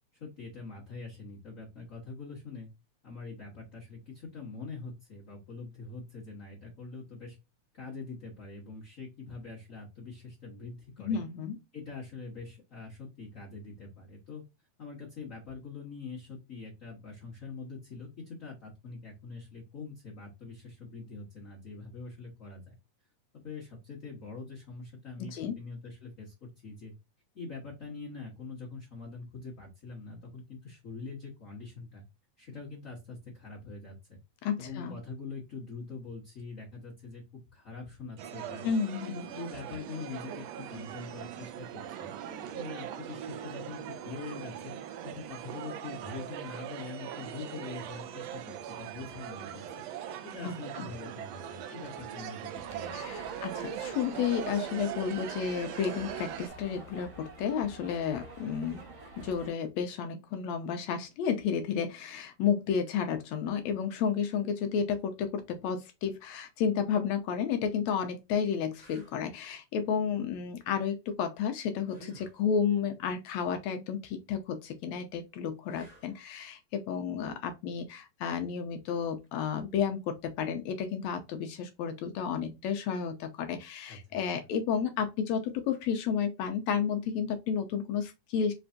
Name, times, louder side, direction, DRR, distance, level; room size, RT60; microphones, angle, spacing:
voice 1, 0.1-2.7 3.0-7.4 7.7-11.2 11.7-14.4 14.8-22.7 23.3-26.9 27.3-32.0 32.4-34.2 34.6-38.7 39.0-44.7 45.0-49.8 50.2-53.2 83.9-84.5, left 4 dB, 45° left, 1.1 m, -44 dB
voice 2, 11.0-11.6 25.3-25.6 34.4-35.0 38.6-39.1 50.4-50.9 52.9-58.8 59.2-88.5, left 7 dB, 75° left, 1.8 m, -32 dB
Edinburgh University Graduation Day, 38.2-56.5, right 10 dB, 80° right, 1.5 m, -41 dB
sound 1, 52.5-59.5, right 2 dB, 45° right, 2.4 m, -48 dB
sound 2, 68.7-69.2 71.8-72.4 75.6-76.3 79.2-79.4, right 2 dB, 25° right, 0.9 m, -54 dB
5.1 x 3.4 x 2.6 m
omnidirectional pair, 3.6 m